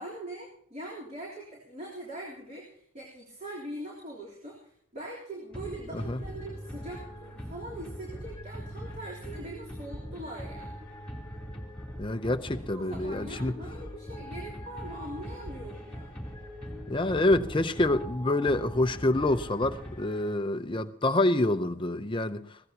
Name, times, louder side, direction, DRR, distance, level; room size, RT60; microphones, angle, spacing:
voice 1, 0.0-10.9 12.5-16.1, right 1 dB, 30° right, 3.4 m, -42 dB
sound 1, 5.5-20.6, equal, 5° left, 3.2 m, -41 dB
voice 2, 12.0-13.5 16.9-22.4, left 2 dB, 20° left, 0.6 m, -27 dB
22.5 x 16.5 x 2.9 m
head